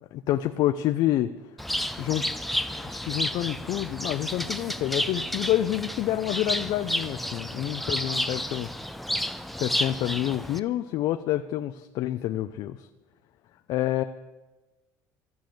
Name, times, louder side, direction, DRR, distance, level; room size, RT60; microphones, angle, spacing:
voice 1, 0.1-1.3 2.0-2.2 2.8-8.9 9.6-12.9 13.7-14.0, left 13 dB, 65° left, 8 dB, 0.5 m, -28 dB
Bird, 1.6-10.6, equal, ahead, 0.5 m, -31 dB
14.5 x 7.0 x 7.7 m, 1.2 s
cardioid pair, 110°, 8 cm